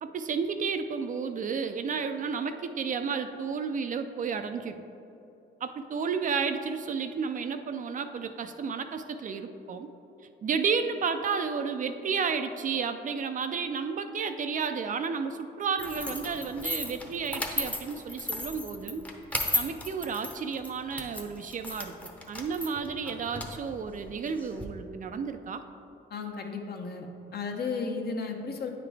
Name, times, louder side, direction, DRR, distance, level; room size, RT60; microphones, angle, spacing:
voice 1, 0.0-4.8 5.6-9.9 10.4-19.0 19.5-21.9 22.3-25.6, right 5 dB, 40° right, 8 dB, 0.4 m, -32 dB
sound 1, 15.8-24.6, left 1 dB, 5° left, 0.7 m, -35 dB
voice 2, 26.1-27.1 27.3-28.7, left 4 dB, 55° left, 3 dB, 0.8 m, -34 dB
9.0 x 3.9 x 3.4 m, 2.9 s
cardioid pair, 90°, 20 cm